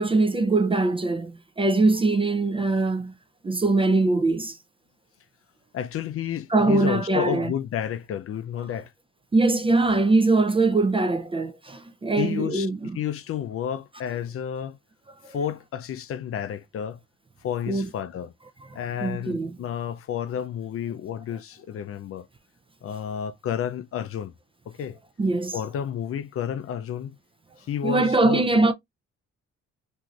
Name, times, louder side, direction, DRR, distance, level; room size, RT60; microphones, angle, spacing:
voice 1, 0.0-3.1 3.4-4.6 6.5-7.5 9.3-12.8 17.7-17.9 19.0-19.5 25.2-25.6 27.8-28.7, right 3 dB, 20° right, 0.4 m, -22 dB
voice 2, 5.7-8.9 12.2-12.7 12.9-14.8 15.3-17.0 17.4-18.3 18.7-22.3 22.8-24.3 24.7-25.0 25.5-27.2 27.6-28.5, left 9 dB, 50° left, 0.4 m, -31 dB
2.6 x 2.4 x 2.9 m
cardioid pair, 90°, 30 cm